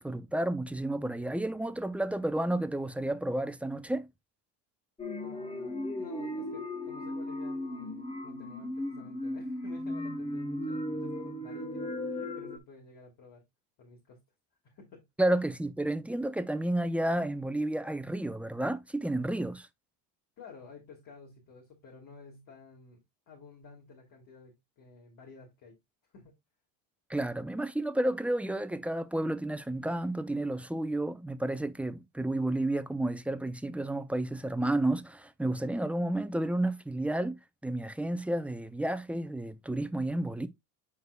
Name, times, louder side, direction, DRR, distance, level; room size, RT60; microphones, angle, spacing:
voice 1, 0.0-4.1 15.2-19.7 27.1-40.5, right 1 dB, 5° right, 0.4 m, -31 dB
sound 1, 5.0-12.6, left 1 dB, 15° left, 1.2 m, -36 dB
voice 2, 5.2-13.4 13.8-14.2 14.6-15.0 20.4-23.0 23.3-25.8 26.1-26.4, left 5 dB, 45° left, 2.7 m, -52 dB
9.6 x 4.6 x 2.2 m
supercardioid pair, 95°, 45 cm